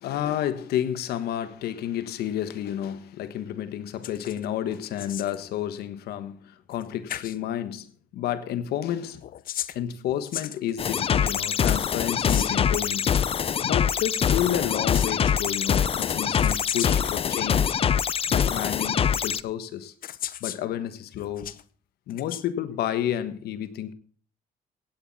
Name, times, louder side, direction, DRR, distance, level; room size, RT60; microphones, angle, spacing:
voice 1, 0.0-7.9 8.1-9.2 9.7-13.1 13.6-17.8 18.3-19.9 20.4-21.5 22.1-23.9, left 11 dB, 85° left, 1.4 m, -30 dB
sound 1, 4.0-4.5 4.7-5.4 6.7-6.8 7.1-7.4 9.1-11.1 11.7-12.7 14.6-15.4 16.0-17.2 18.1-18.2 19.3-19.4 20.0-20.6 21.1-21.6 22.1-22.4, left 11 dB, 65° left, 0.9 m, -36 dB
sound 2, 10.8-19.4, left 8 dB, 35° left, 0.5 m, -24 dB
16.5 x 9.5 x 4.1 m
cardioid pair, 100°, 16 cm